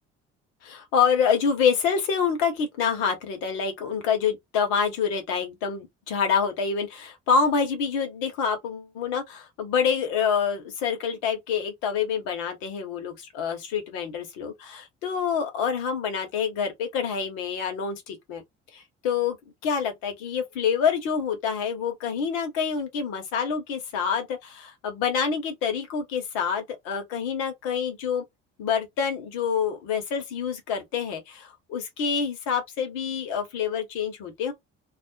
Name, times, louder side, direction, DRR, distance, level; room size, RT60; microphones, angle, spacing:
voice 1, 0.6-18.4 18.7-19.4 19.6-28.2 28.6-34.5, left 6 dB, 65° left, 1.0 m, -27 dB
2.4 x 2.0 x 2.6 m
figure-of-eight pair, 50°, 35 cm